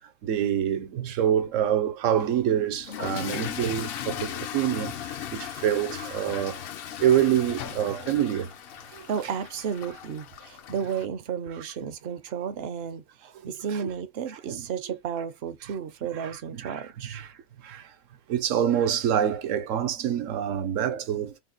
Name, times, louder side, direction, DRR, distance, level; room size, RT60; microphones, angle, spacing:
voice 1, 0.2-6.6 7.0-8.5 8.9-9.1 13.8-13.9 14.5-14.6 16.1-16.8 17.1-17.3 17.6-17.9 18.3-21.4, right 10 dB, 80° right, 1.0 m, -26 dB
Toilet flush / Fill (with liquid), 2.8-11.1, left 10 dB, 60° left, 0.6 m, -37 dB
voice 2, 9.1-17.2, right 7 dB, 60° right, 0.7 m, -33 dB
3.6 x 2.2 x 3.8 m
omnidirectional pair, 1.3 m